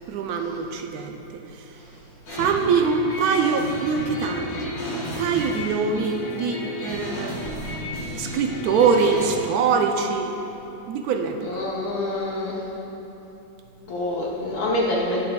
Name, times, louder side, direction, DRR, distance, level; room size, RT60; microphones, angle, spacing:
voice 1, 0.1-1.2 1.5-1.8 2.3-4.5 4.9-7.5 8.1-10.4 10.9-11.7, right 5 dB, 70° right, 4 dB, 0.9 m, -24 dB
sound 1, 2.3-9.4, left 1 dB, 90° left, 2.4 m, -32 dB
voice 2, 11.4-12.6 13.8-15.2, left 1 dB, 65° left, -4 dB, 1.4 m, -26 dB
11.5 x 8.1 x 2.3 m, 3.0 s
omnidirectional pair, 1.9 m